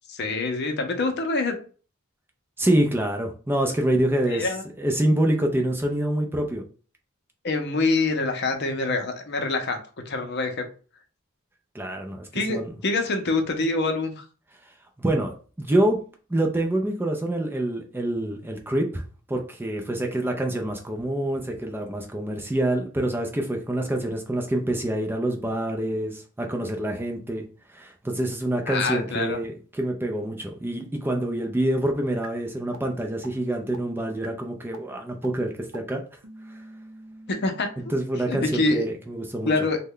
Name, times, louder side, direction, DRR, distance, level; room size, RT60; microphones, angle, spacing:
voice 1, 0.1-1.6 4.3-4.6 7.4-9.8 10.1-10.6 12.3-14.2 28.7-29.4 37.3-37.7 38.3-38.8 39.4-39.8, left 3 dB, 55° left, 5 dB, 0.6 m, -25 dB
voice 2, 2.6-4.5 4.8-6.6 11.7-12.7 15.0-16.0 16.3-19.0 19.3-27.4 27.7-36.0 37.9-39.5, right 1 dB, 10° right, 2 dB, 0.4 m, -26 dB
sound 1, 32.2-32.3 32.7-32.8 33.2-33.3 33.7-33.8 34.2-34.3 34.7-34.8 35.2-35.3 35.7-35.8 36.2-38.0, right 3 dB, 70° right, 0.5 m, -44 dB
3.2 x 2.2 x 3.6 m, 0.39 s
head